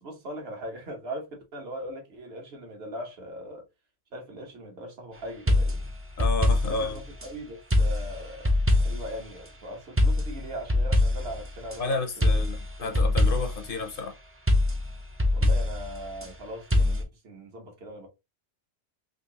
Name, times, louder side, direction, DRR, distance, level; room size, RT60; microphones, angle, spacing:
voice 1, 0.0-3.6 4.1-5.9 6.7-8.5 8.8-12.5 12.8-13.0 15.3-18.1, right 1 dB, 55° right, 1.4 m, -40 dB
sound 1, 5.5-7.3 7.7-9.2 10.0-11.8 12.2-13.7 14.5-16.3 16.7-17.0, left 1 dB, 20° right, 0.4 m, -24 dB
voice 2, 6.2-7.0 11.8-14.2, left 3 dB, 55° left, 0.8 m, -31 dB
3.7 x 2.9 x 2.8 m
omnidirectional pair, 1.2 m